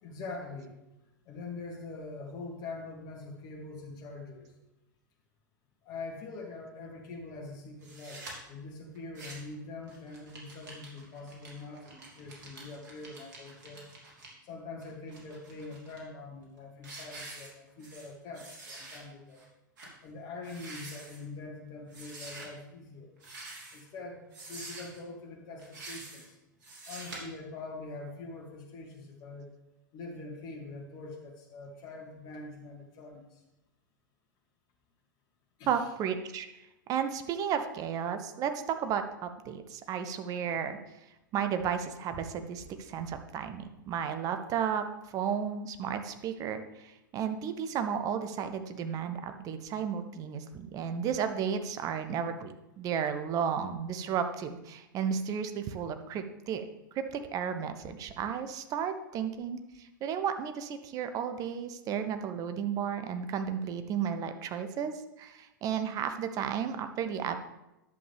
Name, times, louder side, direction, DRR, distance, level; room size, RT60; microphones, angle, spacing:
voice 1, 0.0-0.8 1.2-4.5 5.8-13.9 14.4-19.4 20.0-23.1 23.7-26.4 26.9-29.5 29.9-33.4 35.6-35.9, left 3 dB, 40° left, 0 dB, 2.4 m, -44 dB
sound 1, 7.8-8.3 8.9-9.5 9.9-14.3 14.8-16.0 16.4-16.6 16.8-18.1 18.3-19.0 19.3-19.4 19.8-19.9 20.4-21.2 21.9-22.5 23.2-23.9 24.3-25.0 25.6-26.3 26.6-27.2, right 2 dB, 65° right, 3.1 m, -46 dB
voice 2, 35.7-36.5 36.9-40.8 41.3-56.6 56.9-64.9 65.2-67.4, right 7 dB, 30° right, 8 dB, 0.8 m, -33 dB
10.5 x 7.2 x 3.5 m, 0.95 s
figure-of-eight pair, 100°, 11 cm